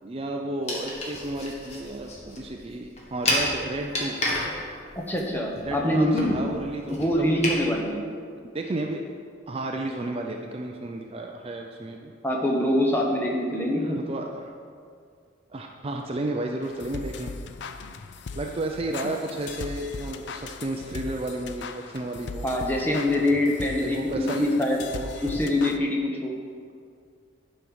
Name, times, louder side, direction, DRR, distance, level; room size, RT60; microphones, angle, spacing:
voice 1, 0.0-4.2 5.7-7.5 8.5-9.0 9.5-12.1 13.8-14.5 15.5-17.3 18.4-22.5 22.9-23.0 23.8-24.5 24.9-25.3, right 2 dB, 30° right, 2 dB, 0.4 m, -32 dB
sound 1, 0.6-7.6, left 1 dB, 35° left, 1.5 m, -31 dB
voice 2, 4.9-6.4 6.9-8.0 12.2-14.0 22.4-24.8 25.2-26.3, left 1 dB, 10° left, -1 dB, 1.0 m, -24 dB
sound 2, 16.6-25.8, left 4 dB, 60° left, 0.4 m, -38 dB
11.0 x 5.4 x 4.8 m, 2.2 s
head